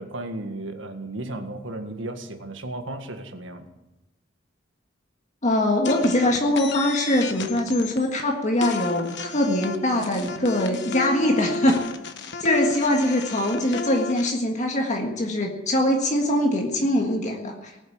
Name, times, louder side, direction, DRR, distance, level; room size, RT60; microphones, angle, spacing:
voice 1, 0.0-3.7, right 2 dB, 80° right, 7 dB, 1.8 m, -34 dB
voice 2, 5.4-11.9 12.4-17.7, left 1 dB, 40° left, 1 dB, 1.7 m, -23 dB
sound 1, 5.8-8.2 8.6-14.3, left 3 dB, 65° left, 1.3 m, -32 dB
19.5 x 8.2 x 8.6 m, 1.0 s
head